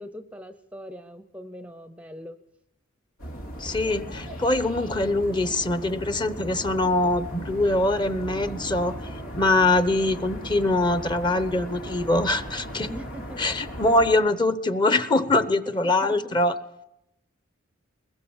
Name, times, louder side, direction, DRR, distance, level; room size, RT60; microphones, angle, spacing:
voice 1, 0.0-2.4 12.9-13.4 15.8-16.4, equal, 5° right, 10 dB, 0.7 m, -41 dB
sound 1, 3.2-14.2, equal, 90° left, 4.1 m, -37 dB
voice 2, 3.6-9.0 9.3-12.9 13.4-16.5, left 2 dB, 20° left, 12 dB, 0.9 m, -23 dB
21.5 x 20.5 x 7.2 m, 0.89 s
head